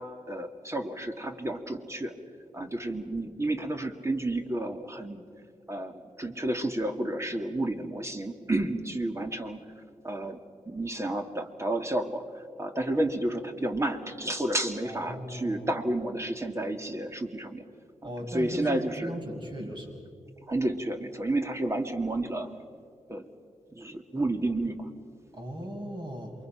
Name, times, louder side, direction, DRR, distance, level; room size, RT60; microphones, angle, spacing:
voice 1, 0.0-2.1 2.5-5.2 5.7-9.6 10.0-10.4 10.7-12.2 12.6-17.6 18.3-19.1 19.6-19.7 20.5-22.5 23.1-23.2 23.7-24.9, right 1 dB, 25° right, 6 dB, 2.2 m, -31 dB
voice 2, 14.8-15.7 18.0-20.0 25.3-26.3, equal, 40° right, 1 dB, 6.1 m, -37 dB
28.0 x 23.5 x 5.9 m, 2.3 s
cardioid pair, 60°, 12 cm